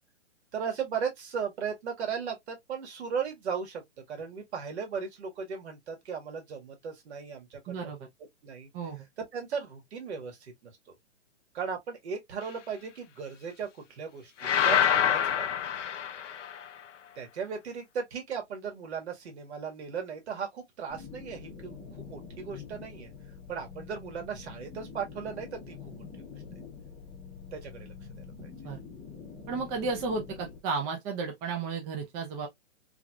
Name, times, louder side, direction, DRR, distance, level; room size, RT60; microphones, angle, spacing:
voice 1, 0.5-3.8 4.1-7.9 8.4-8.7 9.2-10.9 11.5-15.5 17.2-23.1 23.5-26.0 27.5-28.5, right 6 dB, 65° right, 1.8 m, -37 dB
voice 2, 7.7-8.0 8.7-9.1 28.6-28.8 29.5-32.5, right 4 dB, 20° right, 0.7 m, -33 dB
sound 1, 14.4-16.7, left 9 dB, 85° left, 0.6 m, -26 dB
sound 2, 20.9-30.6, left 5 dB, 10° left, 0.8 m, -46 dB
3.4 x 3.1 x 2.3 m
hypercardioid pair, 145°, 36 cm